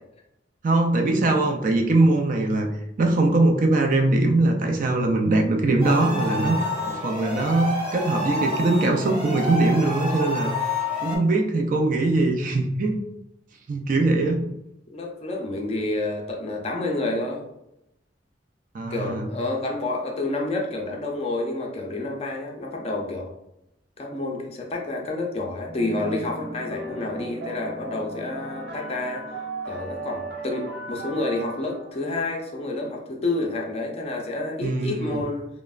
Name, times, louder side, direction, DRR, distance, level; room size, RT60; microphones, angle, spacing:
voice 1, 0.6-2.7 3.0-10.5 11.0-13.0 13.7-14.4 18.7-19.3 34.6-35.2, right 2 dB, 45° right, 3 dB, 0.4 m, -21 dB
sound 1, 5.8-11.2, left 2 dB, 5° right, 0.8 m, -29 dB
voice 2, 14.9-17.4 18.9-23.3 24.0-29.2 29.7-35.5, left 2 dB, 35° left, 0 dB, 0.5 m, -29 dB
sound 2, 25.7-32.7, right 1 dB, 75° right, 0.8 m, -36 dB
3.1 x 2.0 x 2.3 m, 0.83 s
head